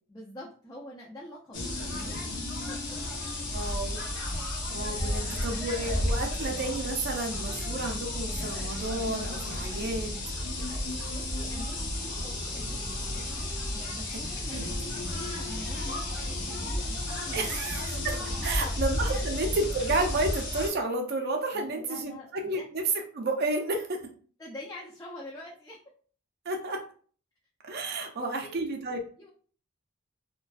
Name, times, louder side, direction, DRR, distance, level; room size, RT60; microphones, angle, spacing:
voice 1, 0.1-2.3 2.7-3.0 5.0-5.3 11.1-18.8 19.1-19.3 21.5-22.7 24.4-25.8 28.1-28.6 29.2-29.3, left 1 dB, 15° left, -4 dB, 0.3 m, -46 dB
sound 1, 1.5-20.7, left 1 dB, 60° left, 0.7 m, -32 dB
voice 2, 3.5-4.1 4.7-10.2 14.5-14.7 17.3-18.2 18.4-22.8 23.1-24.0 26.5-26.8 27.6-29.0, right 2 dB, 50° right, 3 dB, 0.5 m, -31 dB
2.4 x 2.2 x 2.3 m, 0.44 s
head